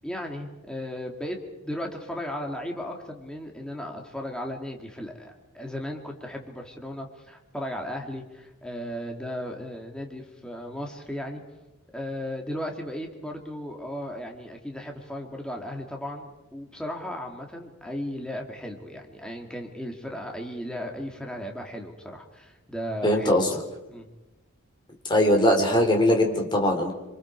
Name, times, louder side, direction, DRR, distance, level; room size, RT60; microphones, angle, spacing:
voice 1, 0.0-1.4 1.6-11.4 11.9-23.4 23.9-24.1, equal, 5° left, 1 dB, 2.4 m, -36 dB
voice 2, 23.0-23.6 25.1-26.9, left 1 dB, 20° left, 2 dB, 3.9 m, -21 dB
27.0 x 26.5 x 4.7 m, 1.0 s
head